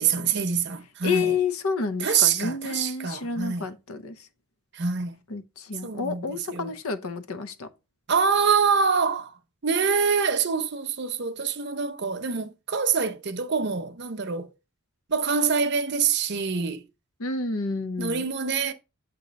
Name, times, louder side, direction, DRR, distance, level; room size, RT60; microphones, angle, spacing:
voice 1, 0.0-1.3 2.0-3.7 4.7-5.2 5.8-6.7 8.1-9.3 9.6-14.5 15.1-16.8 18.0-18.7, right 6 dB, 50° right, 0.7 m, -25 dB
voice 2, 1.0-4.3 5.3-7.7 17.2-18.2, left 4 dB, 85° left, 0.8 m, -30 dB
7.6 x 2.9 x 5.1 m
head